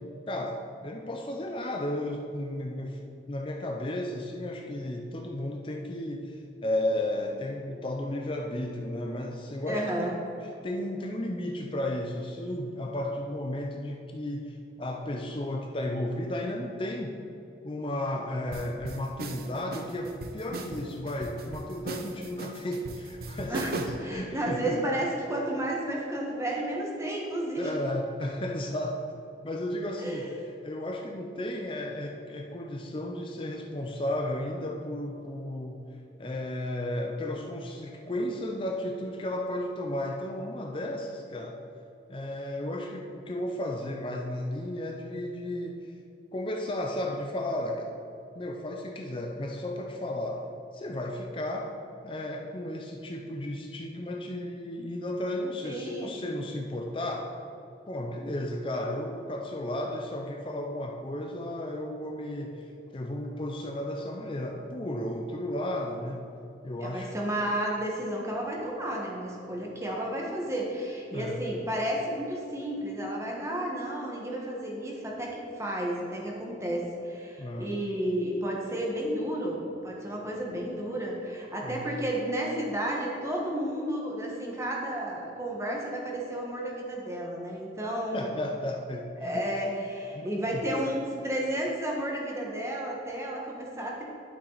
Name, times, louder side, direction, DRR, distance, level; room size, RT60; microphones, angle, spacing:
voice 1, 0.3-3.0 3.3-10.2 10.6-17.2 17.6-24.8 27.5-29.0 29.4-30.3 30.6-35.8 36.2-41.6 42.1-45.9 46.3-48.0 48.3-50.4 50.7-51.7 52.0-57.3 57.9-66.3 66.6-67.1 71.1-71.4 77.4-77.7 81.6-81.9 88.1-89.5 90.1-90.6, left 1 dB, 30° left, 1 dB, 0.5 m, -34 dB
voice 2, 9.7-10.1 23.5-23.7 24.0-27.7 30.0-30.3 55.6-56.3 66.8-88.3 89.2-94.0, right 1 dB, 15° right, -2 dB, 1.3 m, -32 dB
sound 1, 18.5-24.1, right 2 dB, 55° right, 0.6 m, -38 dB
11.5 x 5.8 x 4.0 m, 2.7 s
head